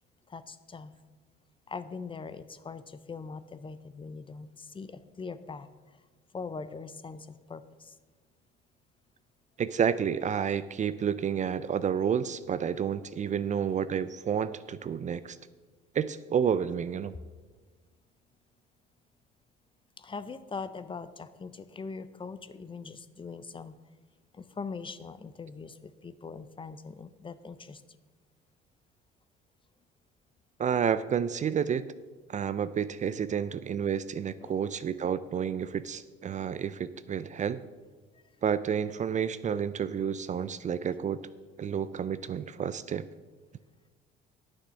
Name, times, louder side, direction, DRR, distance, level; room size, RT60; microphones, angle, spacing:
voice 1, 0.3-0.9 1.7-6.1 6.3-8.0 20.0-23.8 24.3-27.8 34.4-34.5 38.1-38.2, left 4 dB, 25° left, 13 dB, 0.6 m, -42 dB
voice 2, 9.6-15.4 15.9-17.1 30.6-31.9 32.3-37.6 38.4-41.2 41.6-43.1, right 8 dB, 35° right, 15 dB, 0.4 m, -30 dB
9.2 x 7.1 x 6.3 m, 1.3 s
cardioid pair, 90°, 20 cm